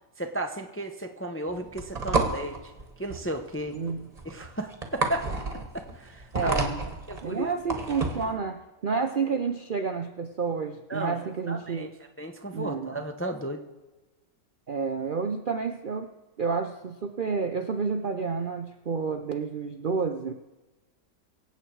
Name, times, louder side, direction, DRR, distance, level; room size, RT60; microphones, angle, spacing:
voice 1, 0.2-2.7 3.0-3.8 4.2-5.3 5.7-6.6 7.1-7.5 9.2-9.3 10.9-11.2 11.5-11.9 12.2-13.6, right 1 dB, 15° left, 5 dB, 0.4 m, -34 dB
sound 1, 1.5-8.3, right 3 dB, 25° right, 1.4 m, -31 dB
voice 2, 6.3-6.8 7.2-11.9 12.5-13.0 14.7-16.1 16.4-20.3, right 5 dB, 85° right, 6 dB, 0.4 m, -30 dB
23.5 x 8.3 x 4.7 m, 1.1 s
omnidirectional pair, 1.9 m